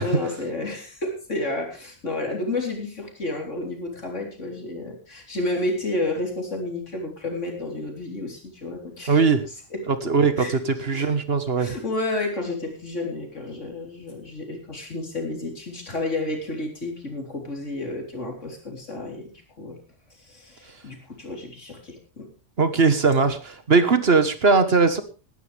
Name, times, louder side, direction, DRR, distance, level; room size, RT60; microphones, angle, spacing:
voice 1, 0.0-9.2 9.7-9.9 10.4-10.5 10.9-11.1 11.6-19.3 19.6-19.8 20.3-22.3, left 2 dB, 85° left, 2 dB, 4.2 m, -31 dB
voice 2, 9.1-9.4 10.0-11.7 22.6-25.0, right 4 dB, 55° right, 10 dB, 1.7 m, -20 dB
18.5 x 12.0 x 3.5 m, 0.34 s
omnidirectional pair, 1.2 m